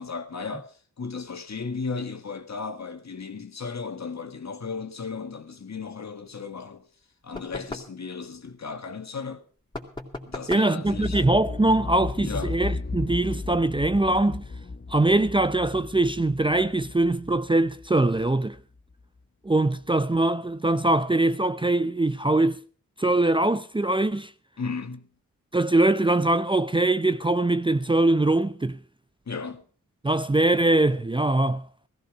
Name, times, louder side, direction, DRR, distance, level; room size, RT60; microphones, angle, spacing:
voice 1, 0.0-6.8 7.2-9.4 10.3-11.2 12.2-12.6 24.6-25.1 29.3-29.6, left 5 dB, 55° left, 1.8 m, -35 dB
sound 1, 7.3-8.0 9.7-10.8, left 2 dB, 15° left, 3.2 m, -37 dB
voice 2, 10.5-14.4 14.9-18.6 19.4-22.6 23.0-24.3 25.5-28.8 30.0-31.7, right 2 dB, 15° right, 0.6 m, -22 dB
sound 2, 10.8-18.6 18.9-19.0, left 3 dB, 30° left, 0.9 m, -35 dB
16.5 x 14.5 x 5.0 m
cardioid pair, 50°, 33 cm